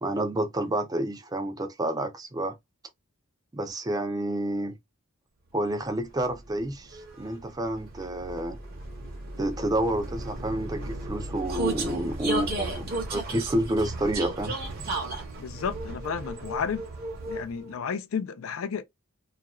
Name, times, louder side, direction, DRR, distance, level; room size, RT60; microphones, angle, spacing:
voice 1, 0.0-2.6 3.5-4.8 5.5-8.6 9.4-14.6, right 1 dB, 15° right, 0.4 m, -29 dB
Vehicle, 5.8-17.7, right 2 dB, 45° right, 0.8 m, -35 dB
voice 2, 15.4-16.9 17.3-18.8, left 6 dB, 65° left, 0.4 m, -32 dB
2.4 x 2.2 x 2.9 m
head